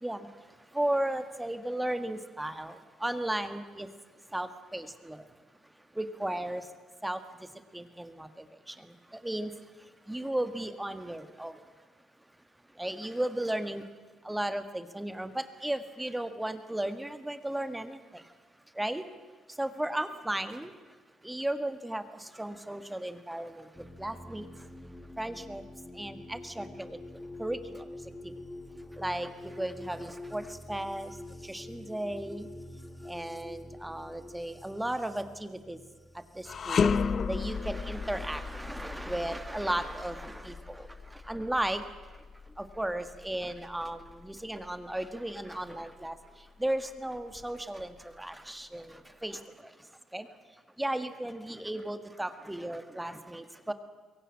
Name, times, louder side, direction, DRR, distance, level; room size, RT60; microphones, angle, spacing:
voice 1, 0.7-3.9 4.3-5.2 6.0-6.7 7.0-7.2 7.7-8.9 9.2-9.5 10.1-11.6 12.8-13.9 14.2-18.2 18.8-19.0 19.6-20.7 21.2-23.7 24.0-24.5 25.2-25.6 25.9-27.0 27.4-27.9 29.0-31.1 31.4-32.5 33.1-35.8 36.4-36.9 37.3-41.8 42.6-46.1 46.6-49.4 50.1-50.3 50.8-53.7, right 1 dB, 10° right, 9 dB, 1.8 m, -35 dB
sound 1, 23.7-38.8 40.0-40.6, left 1 dB, 10° left, 2.1 m, -47 dB
sound 2, 36.4-45.7 46.1-46.3 47.2-48.0, left 5 dB, 50° left, 0.8 m, -34 dB
22.5 x 17.0 x 8.7 m, 1.3 s
supercardioid pair, 80°, 0 cm